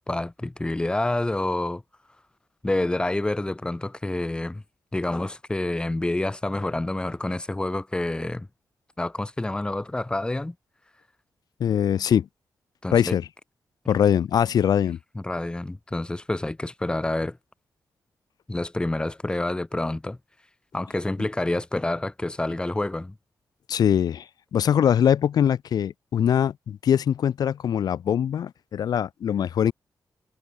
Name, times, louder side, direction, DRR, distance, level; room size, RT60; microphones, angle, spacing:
voice 1, 0.0-1.8 2.6-4.6 4.9-8.5 9.0-10.6 12.8-13.2 13.9-14.0 15.2-17.4 18.5-20.2 20.7-23.2, left 2 dB, 15° left, 5.2 m, -28 dB
voice 2, 11.6-12.3 12.9-13.3 13.9-15.0 23.7-24.3 24.5-29.7, left 9 dB, 75° left, 0.8 m, -22 dB
wide cardioid pair, 140°, 7 cm